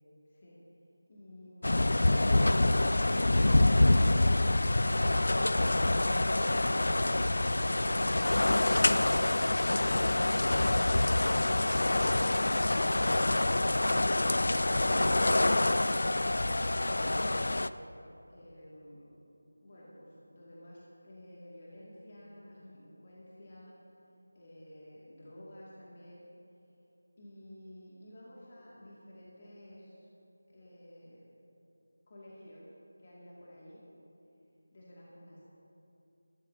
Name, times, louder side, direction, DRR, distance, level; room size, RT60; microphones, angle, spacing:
voice 1, 0.2-0.6 18.3-19.1 19.6-23.8 24.3-26.2 27.2-30.1 30.5-31.2 32.1-32.7 33.0-33.8 34.7-35.4, left 1 dB, 35° left, -7 dB, 2.5 m, -52 dB
sound 1, 1.6-17.7, left 2 dB, 55° left, 0.4 m, -26 dB
22.0 x 13.0 x 2.9 m, 2.8 s
figure-of-eight pair, 165°, 0 cm